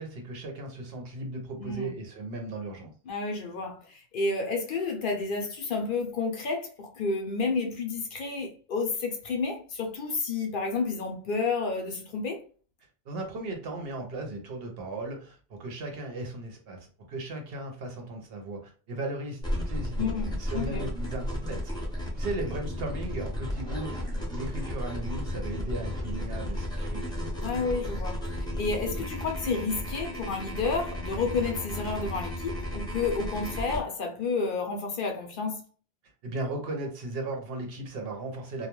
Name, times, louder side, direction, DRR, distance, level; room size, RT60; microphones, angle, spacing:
voice 1, 0.0-2.9 13.1-20.1 20.4-21.8 22.1-27.1 36.2-38.7, right 2 dB, 70° right, 0.9 m, -36 dB
voice 2, 1.6-1.9 3.1-12.4 20.0-20.8 27.4-35.6, left 4 dB, 60° left, 0.7 m, -31 dB
sound 1, 19.4-33.8, left 1 dB, 5° left, 0.5 m, -34 dB
2.2 x 2.2 x 2.9 m
omnidirectional pair, 1.1 m